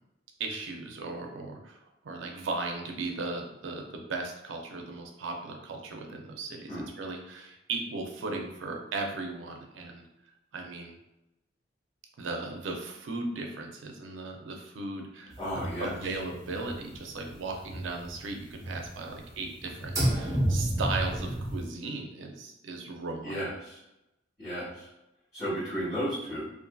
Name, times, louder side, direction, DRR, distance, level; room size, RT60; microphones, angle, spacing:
voice 1, 0.4-1.8 2.0-6.7 7.0-10.0 10.5-11.0 12.2-23.4, right 3 dB, 80° right, 2 dB, 0.4 m, -37 dB
voice 2, 15.4-16.2 23.2-23.8 24.4-24.9 25.3-26.5, equal, 20° left, -16 dB, 1.3 m, -34 dB
sound 1, 15.4-17.3 17.5-19.3 19.6-21.7, right 1 dB, 15° right, 0.6 m, -31 dB
2.6 x 2.4 x 2.2 m, 0.90 s
head